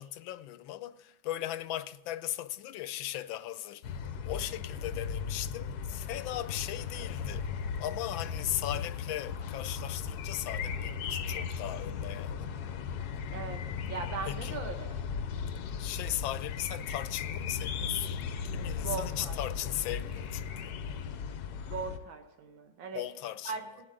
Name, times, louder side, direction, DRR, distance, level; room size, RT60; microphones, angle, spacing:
voice 1, 0.0-4.0 4.2-7.5 7.8-12.5 14.3-14.6 15.8-18.2 18.5-20.7 22.9-23.5, left 13 dB, 85° left, 1.4 m, -38 dB
sound 1, 3.8-22.0, left 6 dB, 65° left, 1.1 m, -37 dB
voice 2, 13.9-15.0 18.8-19.4 21.7-23.0 23.5-23.9, right 5 dB, 85° right, 1.8 m, -39 dB
17.5 x 9.3 x 3.7 m
omnidirectional pair, 2.1 m